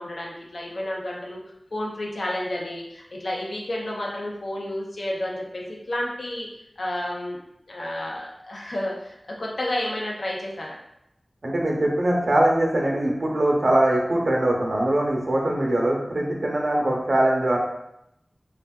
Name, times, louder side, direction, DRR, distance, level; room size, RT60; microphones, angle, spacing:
voice 1, 0.0-1.4 1.7-6.5 6.8-7.4 7.7-10.8, left 1 dB, 85° left, -2 dB, 0.6 m, -31 dB
voice 2, 11.4-17.6, right 1 dB, 75° right, -2 dB, 0.6 m, -22 dB
3.4 x 2.4 x 2.3 m, 0.83 s
wide cardioid pair, 60°, 0 cm